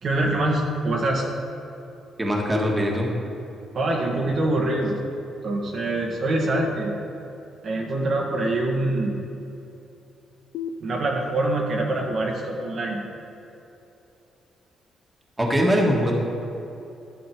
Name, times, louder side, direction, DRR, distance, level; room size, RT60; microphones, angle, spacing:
voice 1, 0.0-1.2 3.7-5.0 5.4-6.9 7.6-9.1 10.8-13.0, right 2 dB, 55° right, -1 dB, 1.5 m, -24 dB
voice 2, 2.2-3.1 15.4-16.1, equal, 15° right, -1 dB, 1.6 m, -22 dB
sound 1, 2.5-3.5 6.5-7.5 10.5-11.5, left 5 dB, 80° left, 0.5 m, -36 dB
12.0 x 6.4 x 4.6 m, 2.9 s
cardioid pair, 90°, 0 cm